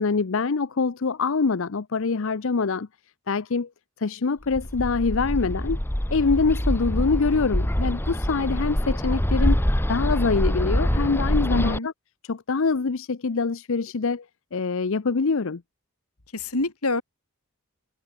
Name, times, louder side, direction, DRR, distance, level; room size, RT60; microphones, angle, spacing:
voice 1, 0.0-2.9 3.3-3.7 4.0-5.8 6.1-9.6 9.9-11.9 12.2-14.2 14.5-15.6, left 4 dB, 60° left, 0.6 m, -24 dB
Bird, 4.5-11.8, equal, 10° left, 1.2 m, -25 dB
voice 2, 11.5-11.9 16.3-17.0, left 2 dB, 80° left, 3.0 m, -26 dB
head